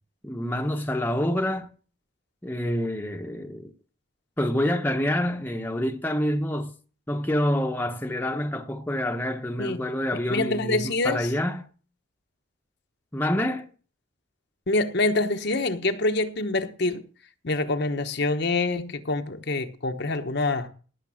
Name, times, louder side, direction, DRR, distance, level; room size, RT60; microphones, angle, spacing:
voice 1, 0.2-1.7 2.4-3.7 4.4-6.7 7.1-11.7 13.1-13.7, left 1 dB, 10° left, 0.9 m, -27 dB
voice 2, 10.3-11.3 14.7-17.0 17.4-20.7, left 2 dB, 50° left, 1.0 m, -26 dB
18.0 x 6.7 x 6.3 m
head